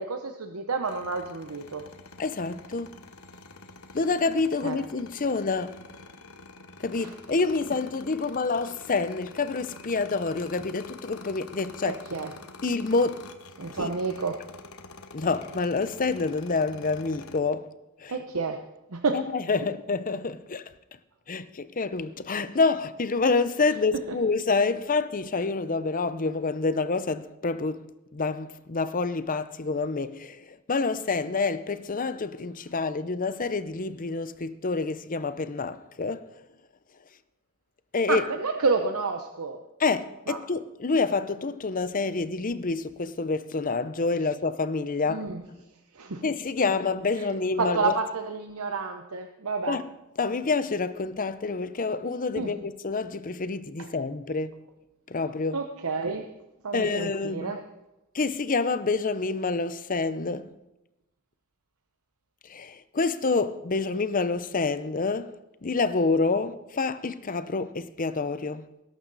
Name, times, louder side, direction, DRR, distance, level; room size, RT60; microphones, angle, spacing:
voice 1, 0.0-1.9 4.6-4.8 7.0-7.1 11.9-12.3 13.6-14.4 18.1-18.6 18.9-19.2 24.1-24.2 38.1-39.6 40.3-40.4 45.1-45.4 45.9-46.3 47.2-47.3 47.6-49.8 52.4-52.5 53.8-53.9 55.5-56.3 56.6-57.6, right 4 dB, 85° right, 0.9 m, -29 dB
sound 1, 0.8-17.4, left 3 dB, 80° left, 1.1 m, -47 dB
voice 2, 2.2-3.0 3.9-5.8 6.8-12.0 12.6-13.3 13.8-13.9 15.1-17.7 18.0-18.2 19.1-20.6 21.3-27.8 28.1-36.3 37.9-38.2 39.8-45.3 46.2-47.9 49.7-49.8 50.2-54.6 55.1-55.6 56.7-57.6 58.1-60.5 62.4-65.3 65.6-68.7, left 4 dB, 40° left, 0.7 m, -27 dB
20.0 x 11.5 x 4.1 m
head